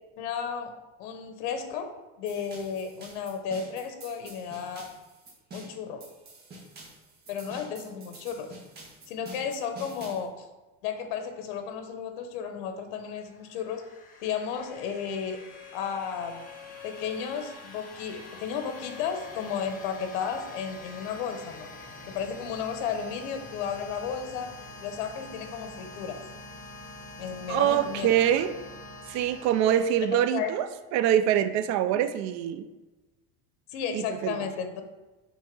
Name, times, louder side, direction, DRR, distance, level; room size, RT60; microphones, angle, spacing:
voice 1, 0.2-0.7 1.0-1.9 2.2-4.9 5.5-6.0 7.3-8.5 9.1-10.5 10.8-13.8 14.2-15.4 15.7-16.4 16.8-21.7 22.1-26.2 27.2-28.1 30.1-30.5 33.7-34.8, left 7 dB, 85° left, 7 dB, 1.0 m, -33 dB
sound 1, 2.3-10.2, right 1 dB, 30° right, 1.8 m, -47 dB
sound 2, 13.1-30.8, left 2 dB, 25° left, 0.8 m, -46 dB
Bowed string instrument, 14.7-19.9, left 7 dB, ahead, 1.2 m, -49 dB
voice 2, 27.5-28.5 29.1-32.6 33.9-34.4, right 10 dB, 55° right, 11 dB, 0.5 m, -25 dB
6.2 x 3.7 x 5.3 m, 1.1 s
cardioid pair, 160°, 33 cm